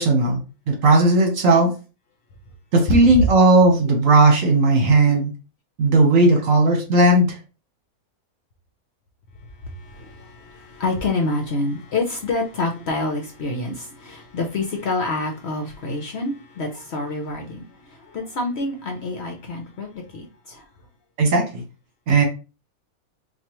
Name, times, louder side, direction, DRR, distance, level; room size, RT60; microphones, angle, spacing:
voice 1, 0.0-1.7 2.7-5.3 5.8-7.4 21.2-21.6 22.1-22.2, right 2 dB, 65° right, 2 dB, 1.4 m, -16 dB
voice 2, 9.7-20.6, left 2 dB, 60° left, 2 dB, 0.8 m, -27 dB
4.5 x 2.6 x 2.9 m, 0.32 s
omnidirectional pair, 1.6 m